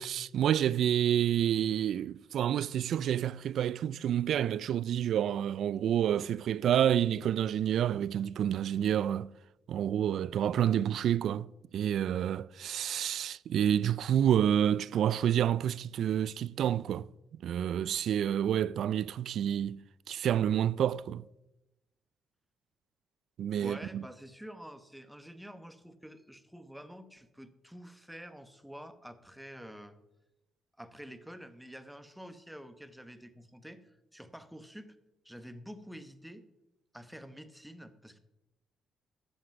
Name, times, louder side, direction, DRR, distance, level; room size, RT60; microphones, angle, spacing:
voice 1, 0.0-9.3 9.7-11.5 11.7-17.1 17.3-19.8 20.1-21.2 23.4-24.0, right 10 dB, 70° right, 0.3 m, -29 dB
voice 2, 23.6-30.0 30.8-35.0 35.2-36.4 36.9-38.2, equal, 5° right, 1.0 m, -48 dB
11.5 x 7.9 x 5.9 m
cardioid pair, 90°, 0 cm